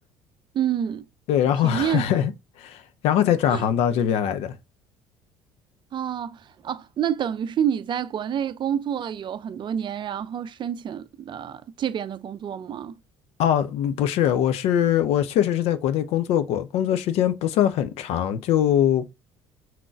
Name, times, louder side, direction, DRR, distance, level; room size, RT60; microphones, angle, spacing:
voice 1, 0.5-1.0 1.6-2.0 3.5-3.6 5.9-12.9, right 9 dB, 45° right, 0.5 m, -28 dB
voice 2, 1.3-2.3 2.6-4.6 13.4-19.0, left 10 dB, 60° left, 0.6 m, -22 dB
5.9 x 3.7 x 2.3 m
hypercardioid pair, 60°, 12 cm